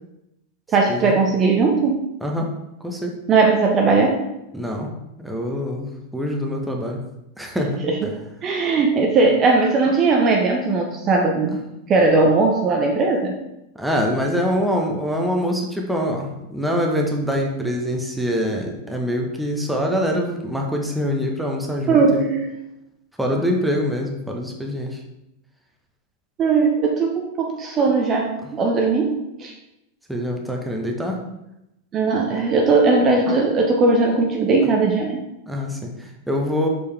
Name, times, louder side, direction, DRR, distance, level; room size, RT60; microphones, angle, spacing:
voice 1, 0.7-2.1 3.3-4.2 7.8-8.1 8.4-11.6 11.9-13.3 21.9-22.5 26.4-29.5 31.9-35.2, right 3 dB, 30° right, 1 dB, 0.8 m, -18 dB
voice 2, 2.8-3.1 4.5-4.9 5.2-7.0 7.4-7.8 13.7-22.2 23.2-25.0 30.1-31.2 32.3-32.4 35.5-36.7, equal, ahead, 0 dB, 1.1 m, -24 dB
6.7 x 5.2 x 3.4 m, 0.87 s
figure-of-eight pair, 90°, 0 cm